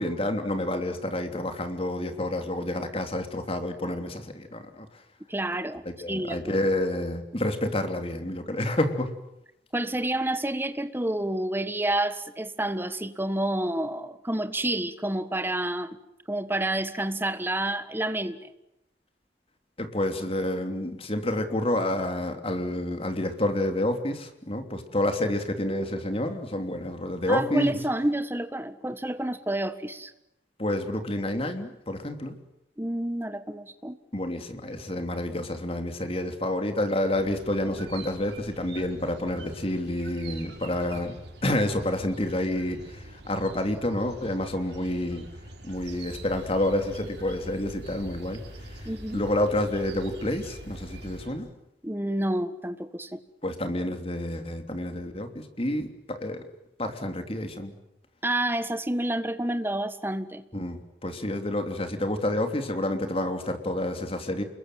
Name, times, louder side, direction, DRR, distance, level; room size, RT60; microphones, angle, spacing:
voice 1, 0.0-5.0 5.8-9.1 19.8-27.8 30.6-32.3 34.1-41.2 41.4-45.3 45.6-48.4 48.7-51.5 53.4-56.4 56.8-57.7 60.5-64.4, left 1 dB, 30° left, 6 dB, 3.1 m, -29 dB
voice 2, 5.3-6.4 9.7-16.0 16.3-18.5 27.3-30.1 32.8-34.0 48.8-49.3 51.8-53.2 58.2-60.4, right 1 dB, 10° right, 10 dB, 1.6 m, -29 dB
sound 1, 37.1-51.4, right 2 dB, 70° right, 5.5 m, -45 dB
sound 2, 45.7-51.3, equal, 85° left, 2.1 m, -46 dB
28.5 x 22.0 x 9.3 m, 0.85 s
head